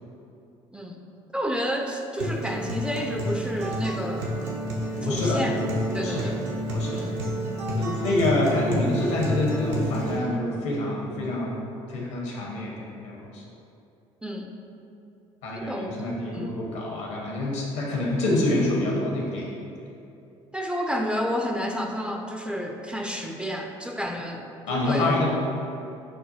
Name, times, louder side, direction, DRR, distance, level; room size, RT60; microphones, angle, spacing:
voice 1, 1.3-4.3 5.0-5.6 5.9-6.5 6.9-7.1 14.2-14.5 15.5-15.9 16.3-16.5 20.5-25.1, equal, 5° right, 2 dB, 0.3 m, -30 dB
Acoustic guitar, 2.2-10.2, equal, 75° right, 0.7 m, -29 dB
voice 2, 5.0-5.4 6.0-6.3 6.7-7.0 7.8-11.6 11.9-13.4 15.4-19.5 24.7-25.3, left 2 dB, 75° left, -3 dB, 0.9 m, -26 dB
6.4 x 2.1 x 2.8 m, 2.8 s
hypercardioid pair, 55°, 16 cm